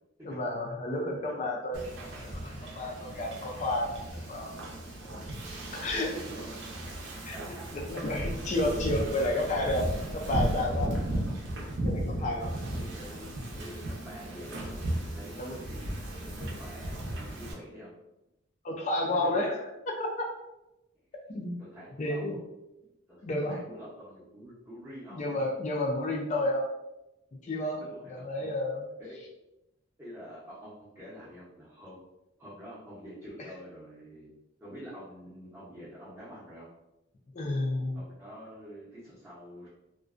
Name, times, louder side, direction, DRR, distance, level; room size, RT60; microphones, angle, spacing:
voice 1, 0.2-1.9 2.2-4.5 5.7-6.1 7.2-7.4 7.9-10.9 11.8-12.5 15.4-15.6 18.6-19.6 20.0-20.1 21.3-21.6 22.0-22.4 23.2-23.6 25.1-26.7 27.4-27.8 28.1-28.9 33.4-33.5 37.3-38.0, left 1 dB, 35° left, 0 dB, 0.3 m, -31 dB
Wind / Ocean, 1.7-17.5, right 1 dB, 60° right, 0.6 m, -35 dB
voice 2, 5.9-6.4 7.3-7.7 9.1-9.3 12.2-18.0 19.2-19.3 21.6-22.4 23.1-25.4 27.8-28.5 29.0-29.2 30.0-32.0 32.4-34.3 34.6-36.7 37.9-39.7, equal, 15° right, -10 dB, 0.6 m, -47 dB
2.4 x 2.1 x 2.4 m, 0.93 s
head